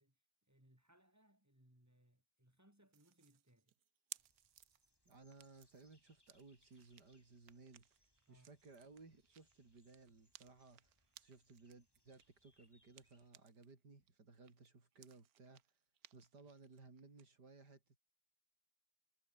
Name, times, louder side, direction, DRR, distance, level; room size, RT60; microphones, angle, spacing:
voice 1, 0.0-3.7 8.3-8.5, right 1 dB, 10° right, 3.9 m, -71 dB
sound 1, 2.9-13.7 14.1-17.2, right 11 dB, 65° right, 1.3 m, -62 dB
sound 2, 4.2-13.3, left 1 dB, 15° left, 4.3 m, -78 dB
voice 2, 5.1-15.8 16.1-18.0, right 3 dB, 85° right, 4.6 m, -61 dB
omnidirectional pair, 1.7 m